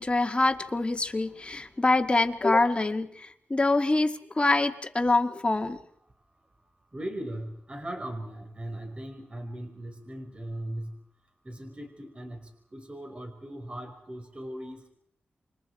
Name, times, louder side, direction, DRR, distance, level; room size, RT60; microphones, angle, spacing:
voice 1, 0.0-5.8, left 2 dB, 30° left, 6 dB, 2.0 m, -25 dB
voice 2, 6.9-11.0 11.4-14.9, right 1 dB, 30° right, 4 dB, 5.3 m, -38 dB
28.0 x 24.5 x 4.8 m, 0.69 s
cardioid pair, 75°, 4 cm